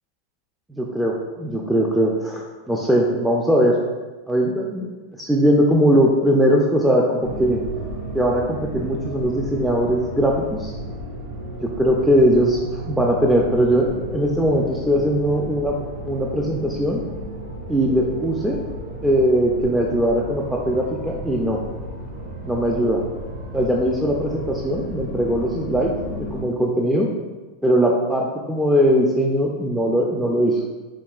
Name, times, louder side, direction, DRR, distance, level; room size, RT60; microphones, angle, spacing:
voice 1, 0.7-3.8 4.3-4.9 5.2-7.6 8.1-10.7 11.6-15.8 16.0-17.0 17.7-18.6 19.0-21.6 22.4-23.0 23.5-27.1 27.6-30.6, equal, 5° right, -2 dB, 0.3 m, -20 dB
sound 1, 7.2-26.4, right 1 dB, 70° right, 0.8 m, -33 dB
4.6 x 2.8 x 2.3 m, 1.3 s
supercardioid pair, 125°, 0 cm